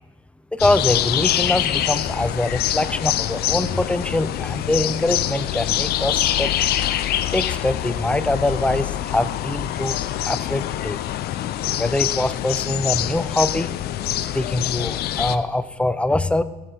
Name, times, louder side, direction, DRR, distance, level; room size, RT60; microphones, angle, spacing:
voice 1, 0.5-6.5 7.3-10.0 10.3-11.0 11.8-13.7 14.3-16.4, left 2 dB, 5° left, 13 dB, 0.5 m, -23 dB
sound 1, 0.6-15.4, left 12 dB, 70° left, 0.5 m, -25 dB
16.0 x 7.1 x 4.6 m, 1.1 s
cardioid pair, 110°, 17 cm